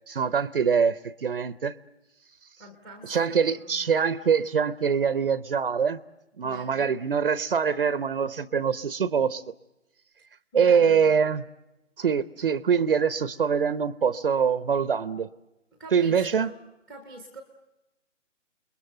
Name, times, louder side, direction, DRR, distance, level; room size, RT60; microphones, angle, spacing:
voice 1, 0.1-1.8 3.1-6.0 6.4-9.4 10.5-11.4 12.0-15.3 15.9-16.5, right 6 dB, 50° right, 0.8 m, -24 dB
voice 2, 2.6-3.9 6.4-6.9 10.5-11.1 15.8-16.6 16.9-17.4, right 1 dB, ahead, 0.9 m, -45 dB
29.5 x 21.5 x 7.8 m
hypercardioid pair, 160°, 37 cm